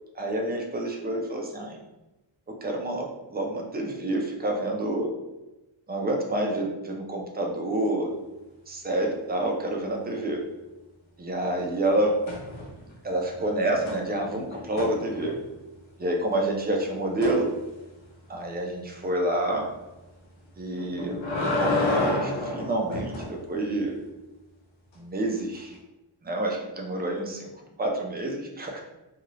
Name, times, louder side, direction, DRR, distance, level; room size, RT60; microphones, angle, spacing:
voice 1, 0.2-1.8 2.6-5.1 5.9-8.1 8.7-10.4 11.2-12.1 13.0-15.3 16.0-17.5 18.3-19.6 20.6-21.2 21.6-24.0 25.0-25.8 26.2-27.5 27.8-28.8, right 1 dB, 20° right, 1 dB, 0.3 m, -28 dB
sound 1, 12.3-12.9 13.2-15.6 17.2-17.4 20.8-23.3 25.5-25.6, left 2 dB, 70° left, 0.8 m, -30 dB
2.8 x 2.5 x 3.1 m, 1.0 s
wide cardioid pair, 180°, 49 cm